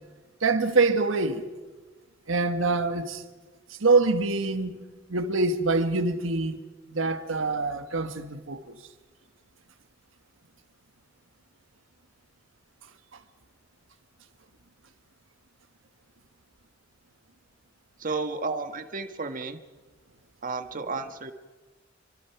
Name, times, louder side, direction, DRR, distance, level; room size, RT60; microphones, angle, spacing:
voice 1, 0.4-1.4 2.3-3.2 3.7-4.8 5.1-6.6 6.9-8.7, right 3 dB, 80° right, 1.5 m, -25 dB
voice 2, 18.0-19.6 20.4-21.3, right 4 dB, 45° right, 1.6 m, -32 dB
27.5 x 25.0 x 5.9 m
head